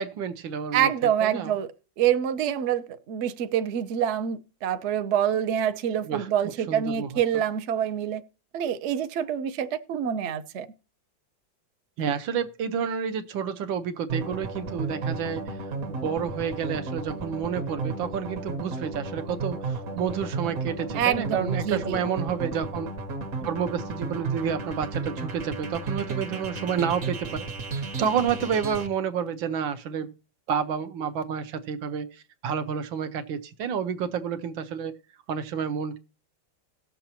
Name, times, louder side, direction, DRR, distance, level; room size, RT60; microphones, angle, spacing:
voice 1, 0.0-0.9 1.2-1.5 6.1-6.3 6.7-7.1 12.0-15.6 15.9-22.9 23.4-27.5 28.0-30.1 30.5-32.1 32.4-34.9 35.3-36.0, right 7 dB, 85° right, 1.6 m, -29 dB
voice 2, 0.7-1.7 2.0-8.2 8.5-10.7 20.9-22.0, right 9 dB, 65° right, 0.7 m, -26 dB
sound 1, 14.1-28.9, right 3 dB, 50° right, 1.3 m, -33 dB
18.5 x 6.9 x 2.9 m
omnidirectional pair, 2.1 m